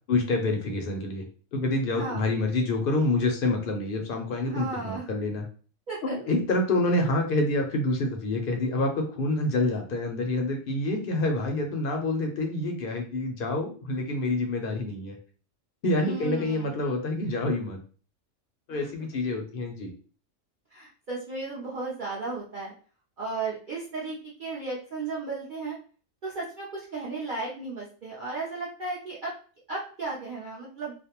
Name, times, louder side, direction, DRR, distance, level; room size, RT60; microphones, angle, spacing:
voice 1, 0.1-1.2 1.5-5.4 6.0-15.2 15.8-17.8 18.7-19.9, left 2 dB, 60° left, 2 dB, 0.6 m, -27 dB
voice 2, 1.9-2.2 4.4-5.0 5.9-6.2 16.0-16.8 18.7-18.9 20.7-22.7 23.2-25.8 26.2-29.3 29.7-30.9, right 3 dB, 55° right, -6 dB, 0.6 m, -35 dB
2.4 x 2.0 x 2.8 m, 0.40 s
omnidirectional pair, 1.4 m